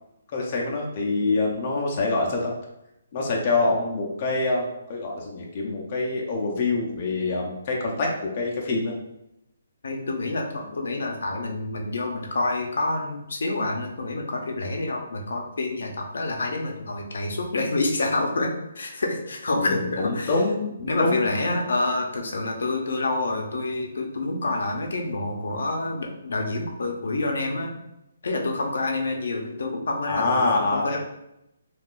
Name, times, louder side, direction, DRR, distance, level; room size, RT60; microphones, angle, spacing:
voice 1, 0.3-2.5 3.1-8.9 19.6-21.6 30.1-31.0, left 3 dB, 30° left, -1 dB, 0.5 m, -25 dB
voice 2, 9.8-20.3 20.9-27.7 28.2-31.0, left 2 dB, 75° left, 2 dB, 0.6 m, -28 dB
3.6 x 2.3 x 2.4 m, 0.85 s
hypercardioid pair, 170°, 0 cm